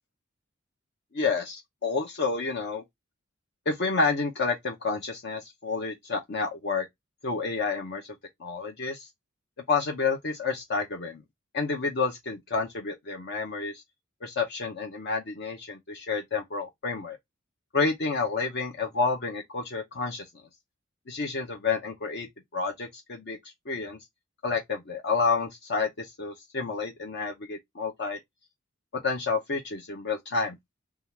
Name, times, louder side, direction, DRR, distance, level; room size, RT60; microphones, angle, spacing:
voice 1, 1.1-2.8 3.7-6.9 7.2-8.1 8.4-9.1 9.7-11.2 11.5-13.8 14.2-17.2 17.7-20.2 21.1-22.3 22.5-23.4 23.7-24.0 24.4-28.2 28.9-30.5, left 4 dB, 55° left, 0.7 m, -29 dB
3.7 x 2.4 x 4.3 m
head